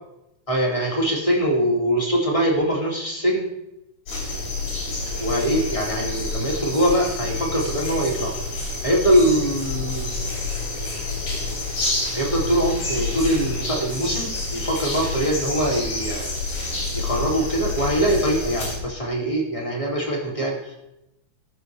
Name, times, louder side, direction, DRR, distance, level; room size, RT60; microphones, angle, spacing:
voice 1, 0.5-3.4 5.2-8.3 8.6-10.1 12.1-16.3 16.9-20.7, right 1 dB, 10° left, -2 dB, 1.8 m, -23 dB
sound 1, 4.1-18.8, left 3 dB, 75° left, 4.9 m, -28 dB
18.5 x 6.9 x 3.4 m, 0.88 s
omnidirectional pair, 3.6 m